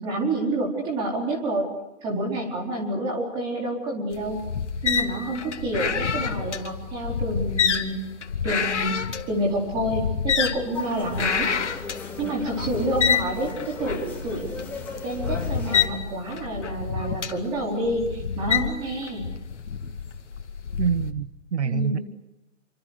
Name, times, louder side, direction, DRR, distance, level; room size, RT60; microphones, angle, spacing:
voice 1, 0.0-1.7 2.0-4.4 4.8-8.0 8.4-9.0 9.3-11.5 12.2-14.5 15.0-19.2 21.6-22.0, right 1 dB, 10° right, 0 dB, 4.4 m, -28 dB
sound 1, 4.1-21.1, left 7 dB, 65° left, 2.6 m, -28 dB
sound 2, 10.7-15.9, left 4 dB, 5° left, 3.4 m, -37 dB
voice 2, 20.8-22.0, right 6 dB, 65° right, 15 dB, 1.1 m, -26 dB
28.5 x 25.5 x 6.6 m, 0.95 s
hypercardioid pair, 170°, 37 cm